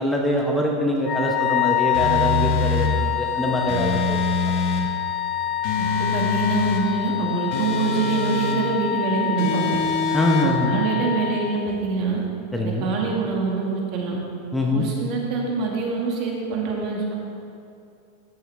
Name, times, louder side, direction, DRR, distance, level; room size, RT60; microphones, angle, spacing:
voice 1, 0.0-4.2 10.1-10.7 12.5-12.9 14.5-14.8, left 1 dB, 5° left, -1 dB, 0.9 m, -23 dB
Wind instrument woodwind instrument, 1.0-11.8, left 11 dB, 30° left, 0.6 m, -26 dB
sound 1, 1.9-2.9 3.7-4.9 5.6-6.8 7.5-8.6 9.4-10.5, left 3 dB, 55° left, 1.3 m, -25 dB
voice 2, 5.8-9.8 10.6-12.2 12.6-14.2 14.7-17.2, right 4 dB, 50° right, -1 dB, 1.9 m, -25 dB
13.5 x 7.1 x 3.4 m, 2.5 s
supercardioid pair, 135°, 0 cm